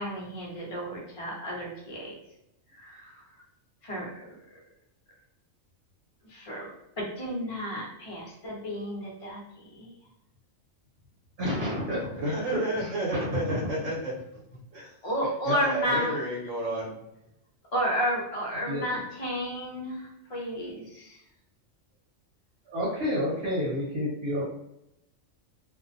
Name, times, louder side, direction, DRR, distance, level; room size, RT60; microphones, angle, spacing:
voice 1, 0.0-2.1 2.8-3.1 3.8-4.4 6.3-6.7 7.0-9.9 15.0-16.2 17.7-21.2, equal, 35° left, -3 dB, 0.6 m, -32 dB
voice 2, 11.4-12.1 12.5-13.7 18.7-18.9 22.7-24.4, left 1 dB, 55° right, -7 dB, 1.1 m, -30 dB
voice 3, 12.2-14.2 14.7-14.9 15.4-16.9, right 1 dB, 75° right, -2 dB, 1.1 m, -31 dB
2.5 x 2.0 x 2.6 m, 0.84 s
omnidirectional pair, 1.3 m